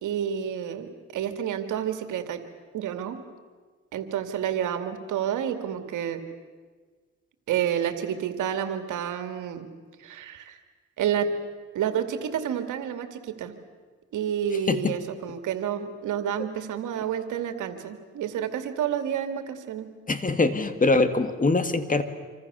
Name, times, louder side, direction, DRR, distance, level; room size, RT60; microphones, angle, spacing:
voice 1, 0.0-2.4 2.7-3.2 3.9-6.2 7.5-9.7 10.0-10.6 11.0-11.3 11.7-13.5 14.1-19.9, right 9 dB, 80° right, 8 dB, 2.4 m, -29 dB
voice 2, 20.1-22.0, left 3 dB, 25° left, 9 dB, 2.2 m, -23 dB
27.0 x 26.0 x 7.0 m, 1.5 s
cardioid pair, 90°, 30 cm